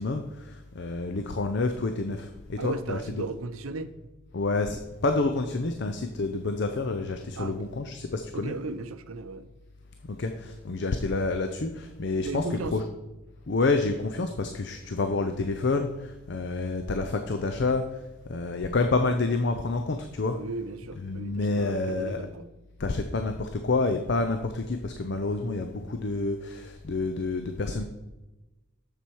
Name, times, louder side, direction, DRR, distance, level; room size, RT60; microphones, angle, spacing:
voice 1, 0.0-3.0 4.3-8.5 10.1-12.8 13.5-17.8 18.3-20.4 21.0-22.2 22.8-27.8, left 3 dB, 55° left, 6 dB, 0.5 m, -28 dB
voice 2, 2.6-3.9 7.4-7.6 8.3-9.5 12.2-12.8 20.3-22.5, right 3 dB, 75° right, 12 dB, 0.6 m, -36 dB
7.2 x 7.0 x 4.6 m, 1.0 s
head